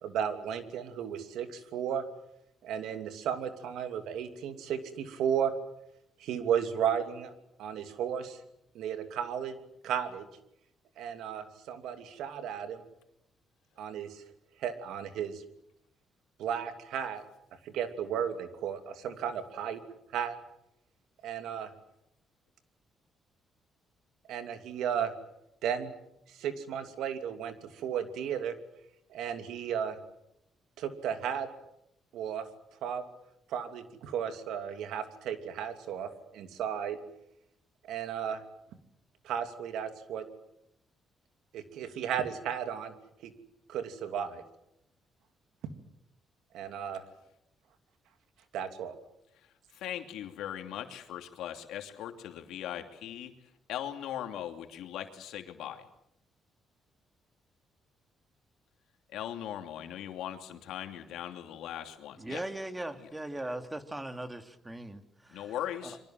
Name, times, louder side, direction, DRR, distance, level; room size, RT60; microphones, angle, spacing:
voice 1, 0.0-2.0 2.6-5.5 6.2-7.3 7.6-8.4 8.7-9.6 9.8-10.3 11.0-12.8 13.8-14.2 14.6-15.4 16.4-17.2 17.6-19.8 20.1-20.4 21.2-21.7 24.3-25.1 25.6-25.9 26.3-28.5 29.1-30.0 30.8-31.5 32.1-32.4 32.8-33.0 33.5-37.0 37.8-38.4 39.2-40.2 41.5-42.9 43.2-43.3 43.7-44.4 46.5-47.0 48.5-48.9, right 8 dB, 85° right, 8 dB, 2.8 m, -34 dB
voice 2, 49.7-53.3 53.7-55.8 59.1-62.4 63.0-63.1 65.3-66.0, left 11 dB, 85° left, 6 dB, 2.8 m, -39 dB
voice 3, 62.2-65.5 65.8-65.9, right 1 dB, 15° right, 8 dB, 2.6 m, -39 dB
27.0 x 23.5 x 7.7 m, 0.80 s
cardioid pair, 90°, 0 cm